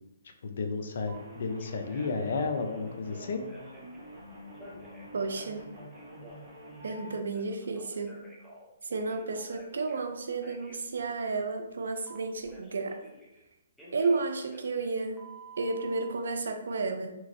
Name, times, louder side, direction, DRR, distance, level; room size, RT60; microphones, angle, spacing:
voice 1, 0.4-3.4, left 4 dB, 60° left, 5 dB, 0.4 m, -32 dB
Telephone, 1.1-1.2 1.6-2.2 2.6-4.0 4.5-7.0 7.3-10.1 10.4-10.8 12.1-13.4 13.8-16.1, right 2 dB, 5° left, 0.5 m, -51 dB
sound 1, 1.1-7.2, equal, 20° right, 1.0 m, -48 dB
voice 2, 5.1-5.7 6.8-8.2 8.8-13.0 13.9-15.2 15.6-17.1, right 3 dB, 80° right, 6 dB, 0.4 m, -32 dB
3.0 x 2.5 x 2.5 m, 0.95 s
hypercardioid pair, 160°, 0 cm